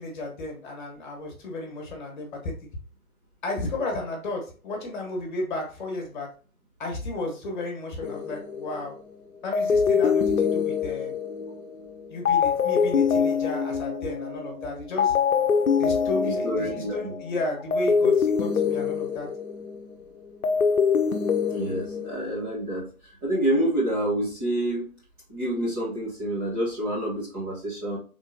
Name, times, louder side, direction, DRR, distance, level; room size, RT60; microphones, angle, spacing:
voice 1, 0.0-2.5 3.4-6.3 6.8-8.9 9.4-11.1 12.1-15.1 15.8-19.3, left 2 dB, 35° left, 1 dB, 1.5 m, -33 dB
sound 1, 8.0-9.0 9.5-14.7 15.0-19.9 20.3-22.4, left 6 dB, 70° left, 0.7 m, -25 dB
voice 2, 16.2-17.1 21.5-24.9 25.3-28.0, right 1 dB, 15° right, -8 dB, 0.9 m, -28 dB
4.8 x 3.6 x 2.7 m, 0.39 s
figure-of-eight pair, 135°, 43 cm